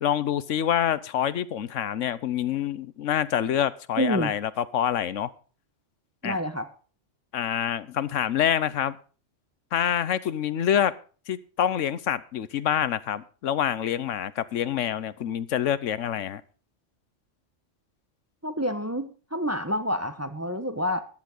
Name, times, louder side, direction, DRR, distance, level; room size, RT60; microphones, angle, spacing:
voice 1, 0.0-5.3 6.2-6.4 7.3-9.0 9.7-10.9 11.3-16.4, left 10 dB, 85° left, 17 dB, 1.1 m, -26 dB
voice 2, 4.0-4.3 6.2-6.7 18.4-21.0, equal, 15° right, 8 dB, 1.0 m, -28 dB
14.5 x 11.0 x 3.9 m, 0.38 s
omnidirectional pair, 1.3 m